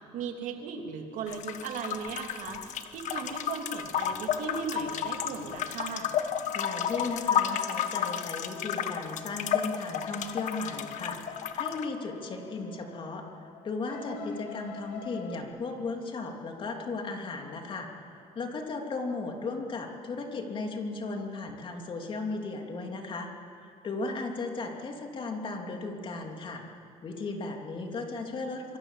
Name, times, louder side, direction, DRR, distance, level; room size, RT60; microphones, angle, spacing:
voice 1, 0.1-6.1 14.0-14.3, right 5 dB, 65° right, 3 dB, 3.2 m, -37 dB
sound 1, 1.3-11.9, left 9 dB, 55° left, 1.5 m, -32 dB
sound 2, 5.9-15.4, left 8 dB, 75° left, 2.9 m, -46 dB
voice 2, 6.5-17.9 18.3-23.3 23.6-26.6 27.0-28.8, left 3 dB, 35° left, 2 dB, 3.1 m, -36 dB
27.0 x 23.0 x 7.6 m, 2.5 s
cardioid pair, 125°, 15 cm